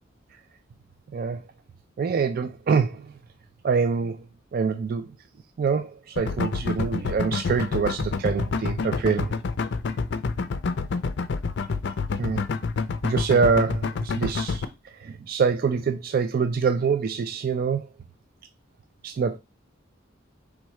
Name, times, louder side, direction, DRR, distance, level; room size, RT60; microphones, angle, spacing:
voice 1, 2.0-3.1 3.6-4.2 4.5-5.1 5.6-9.3 12.2-12.4 13.0-14.7 15.0-17.9 19.0-19.4, right 5 dB, 50° right, 0.3 m, -25 dB
sound 1, 6.2-14.6, left 4 dB, 60° left, 0.4 m, -28 dB
4.6 x 3.5 x 3.1 m
head